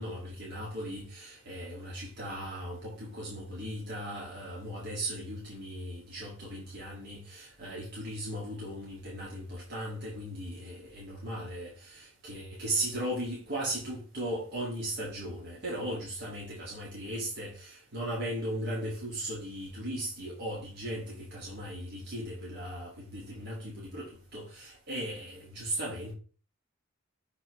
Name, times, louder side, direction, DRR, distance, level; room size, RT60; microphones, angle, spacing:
voice 1, 0.0-26.1, right 1 dB, 50° right, 1.8 m, -37 dB
6.5 x 4.8 x 3.1 m
head